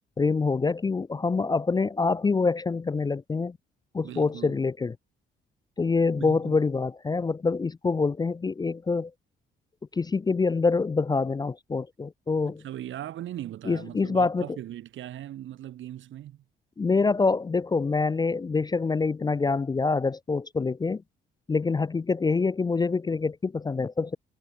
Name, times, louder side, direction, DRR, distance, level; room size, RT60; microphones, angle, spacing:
voice 1, 0.2-3.6 3.9-4.9 5.8-9.1 9.9-12.6 13.7-14.5 16.8-21.0 21.5-24.2, left 4 dB, 20° left, 0.4 m, -25 dB
voice 2, 4.0-4.6 6.2-6.6 12.5-16.4, right 12 dB, 75° right, 2.3 m, -39 dB
cardioid pair, 90°, 20 cm